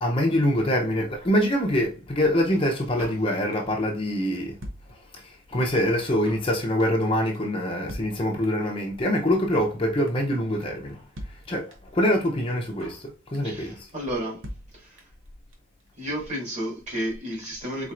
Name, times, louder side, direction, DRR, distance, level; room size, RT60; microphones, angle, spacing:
voice 1, 0.0-4.5 5.1-11.0 11.5-13.9, equal, 25° left, 0.7 m, -25 dB
Drum kit, 3.0-3.8 4.1-4.2 4.3-5.4 5.7-5.8 6.0-6.5 6.8-7.1 7.3-7.4 7.6-7.7 7.9-8.7 9.0-9.1 9.3-9.8 10.1-10.4 10.6-10.7 10.9-11.0 11.2-12.0 12.3-12.4 12.5-13.1 13.3-13.6 13.9-14.0 14.2-14.3 14.4-15.3 15.5-15.6 15.8-15.9, equal, 70° right, 1.1 m, -41 dB
voice 2, 13.4-14.5 14.7-15.0 16.0-17.9, equal, 35° right, 2.3 m, -32 dB
4.2 x 3.9 x 2.5 m
head